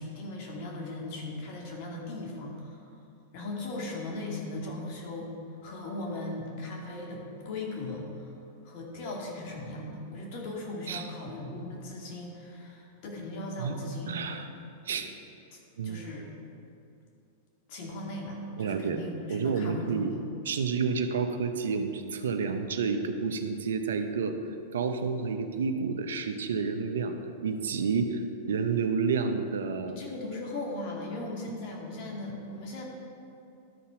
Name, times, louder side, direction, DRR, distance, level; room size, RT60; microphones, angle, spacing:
voice 1, 0.0-2.8 3.3-5.3 5.6-8.3 8.6-14.2 14.9-15.1 15.5-16.3 17.7-20.2 29.9-32.8, left 2 dB, 55° left, -1 dB, 2.3 m, -38 dB
voice 2, 14.1-14.5 14.9-15.1 15.8-16.0 18.6-19.0 19.3-20.1 20.5-24.4 24.7-27.1 27.4-29.9, right 5 dB, 85° right, 7 dB, 0.7 m, -30 dB
12.5 x 4.3 x 5.8 m, 2.6 s
hypercardioid pair, 115°, 0 cm